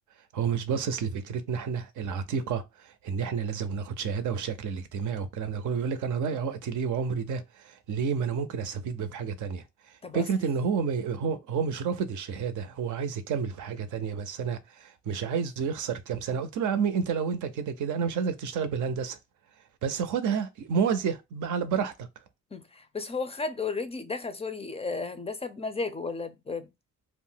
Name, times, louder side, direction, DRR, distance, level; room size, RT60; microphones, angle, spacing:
voice 1, 0.3-9.6 10.1-19.2 19.8-22.1, right 6 dB, 80° right, 0.6 m, -30 dB
voice 2, 22.5-26.7, left 4 dB, 20° left, 0.4 m, -34 dB
2.4 x 2.1 x 3.7 m
cardioid pair, 90°, 30 cm